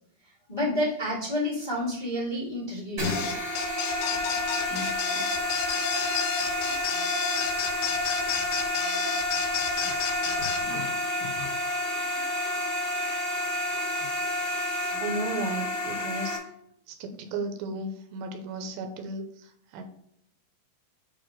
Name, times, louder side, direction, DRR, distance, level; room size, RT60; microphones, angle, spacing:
voice 1, 0.5-3.2, left 1 dB, 70° left, -8 dB, 0.4 m, -29 dB
sound 1, 3.0-10.6, left 7 dB, 85° left, 3.0 m, -31 dB
sound 2, 3.0-16.4, left 1 dB, 35° right, 1.3 m, -30 dB
voice 2, 15.0-16.4 16.9-19.8, right 3 dB, 80° right, 5 dB, 3.1 m, -34 dB
8.8 x 3.0 x 5.0 m, 0.72 s
omnidirectional pair, 5.0 m